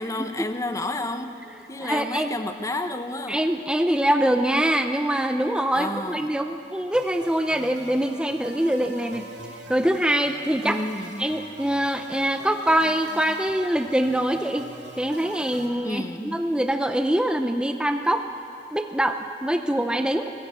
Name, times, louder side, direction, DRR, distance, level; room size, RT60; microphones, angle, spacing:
voice 1, 0.0-1.4 1.7-3.4 5.7-6.4 10.6-11.3 15.8-16.5, left 2 dB, 20° left, 8 dB, 0.9 m, -31 dB
voice 2, 1.8-2.3 3.3-9.3 9.7-10.8 11.2-14.7 15.0-18.2 18.7-20.3, right 1 dB, 5° right, 6 dB, 0.6 m, -24 dB
sound 1, 6.9-15.7, right 2 dB, 80° right, 2.7 m, -43 dB
26.0 x 15.5 x 7.6 m, 2.8 s
head